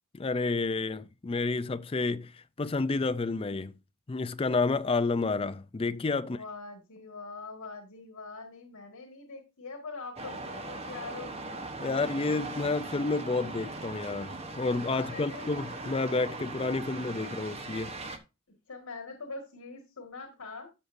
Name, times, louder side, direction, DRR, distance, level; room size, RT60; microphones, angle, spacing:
voice 1, 0.1-3.7 4.1-6.4 11.8-18.0, left 3 dB, 25° left, 0.4 m, -30 dB
voice 2, 6.2-11.3 14.9-15.5 18.7-20.7, left 3 dB, 85° left, 1.8 m, -43 dB
sound 1, 10.2-18.2, right 2 dB, 30° right, 0.9 m, -39 dB
12.5 x 6.6 x 2.6 m
head